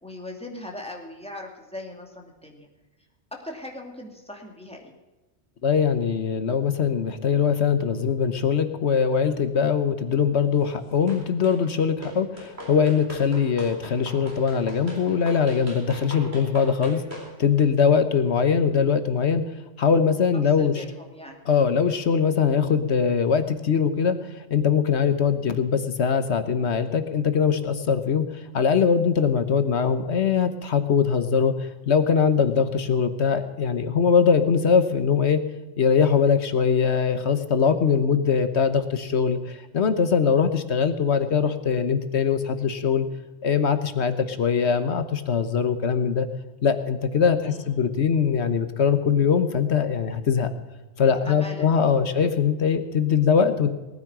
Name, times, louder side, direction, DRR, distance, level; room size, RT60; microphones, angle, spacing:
voice 1, 0.0-2.7 3.3-4.9 20.6-21.4 47.4-47.9 51.0-52.3, left 1 dB, 5° left, 0 dB, 2.5 m, -40 dB
voice 2, 5.6-19.4 19.8-20.8 21.5-24.2 24.5-28.2 28.5-35.4 35.8-43.1 43.4-46.3 46.6-50.5 51.0-53.7, left 6 dB, 70° left, 10 dB, 1.4 m, -22 dB
sound 1, 11.1-11.6 12.0-17.3, equal, 60° right, 4.5 m, -40 dB
18.5 x 9.5 x 6.1 m, 1.1 s
omnidirectional pair, 1.2 m